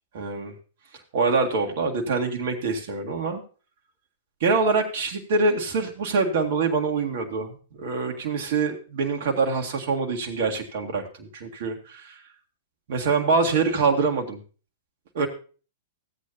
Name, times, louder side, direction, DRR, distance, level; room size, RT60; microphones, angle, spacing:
voice 1, 0.1-0.5 1.1-3.4 4.4-12.2 12.9-14.4 15.1-15.3, right 4 dB, 55° right, 2 dB, 1.9 m, -25 dB
15.5 x 8.6 x 2.8 m, 0.38 s
figure-of-eight pair, 105°, 0 cm